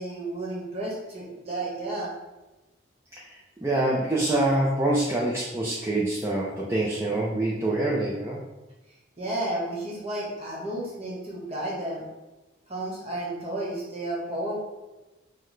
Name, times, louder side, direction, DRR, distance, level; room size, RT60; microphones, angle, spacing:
voice 1, 0.0-2.1 9.2-12.0 12.7-14.6, right 1 dB, 30° right, -4 dB, 1.0 m, -32 dB
voice 2, 3.2-8.4, right 2 dB, 15° right, -5 dB, 0.4 m, -26 dB
5.6 x 2.1 x 3.2 m, 1.1 s
head